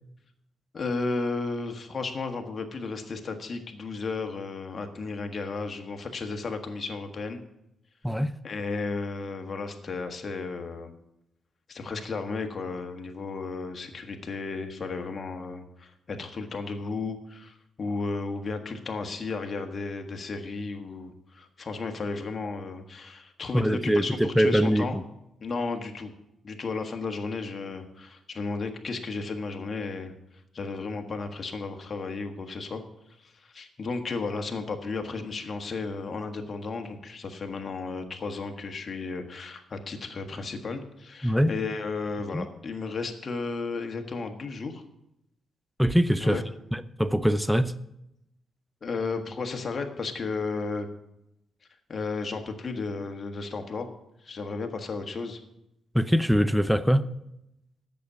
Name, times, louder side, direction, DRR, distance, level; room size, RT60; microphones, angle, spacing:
voice 1, 0.7-7.4 8.4-10.9 11.7-24.9 25.4-26.1 26.4-30.1 30.5-32.8 33.2-44.8 46.2-46.4 48.8-50.9 51.9-53.9 54.2-55.4, left 4 dB, 45° left, 1.5 m, -34 dB
voice 2, 23.5-25.0 41.2-41.5 42.3-42.5 45.8-46.4 46.7-47.7 55.9-57.1, equal, ahead, 0.5 m, -23 dB
8.4 x 6.9 x 8.2 m
cardioid pair, 85°, 0 cm